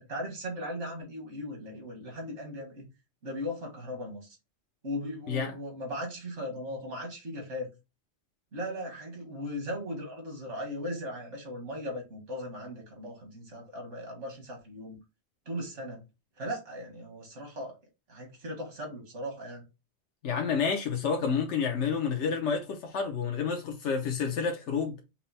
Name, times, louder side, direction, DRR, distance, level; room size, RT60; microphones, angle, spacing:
voice 1, 0.0-2.8 3.2-4.3 4.8-7.7 8.5-15.0 15.5-16.0 16.4-17.8 18.1-19.6, equal, 85° right, 1.9 m, -38 dB
voice 2, 20.2-25.0, left 6 dB, 85° left, 1.0 m, -29 dB
5.5 x 2.0 x 4.0 m
omnidirectional pair, 1.2 m